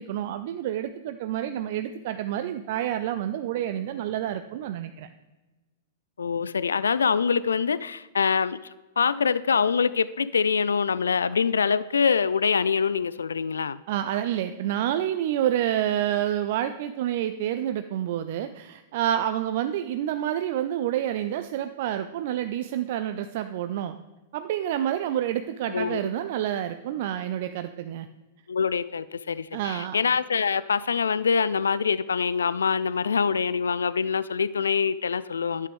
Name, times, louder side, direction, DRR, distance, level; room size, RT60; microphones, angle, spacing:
voice 1, 0.0-5.1 13.9-23.9 24.3-28.1 29.5-30.0, right 11 dB, 50° right, 0.4 m, -28 dB
voice 2, 6.2-13.8 25.7-26.1 28.5-35.7, left 6 dB, 75° left, 0.3 m, -25 dB
11.0 x 8.4 x 3.5 m
figure-of-eight pair, 105°, 0 cm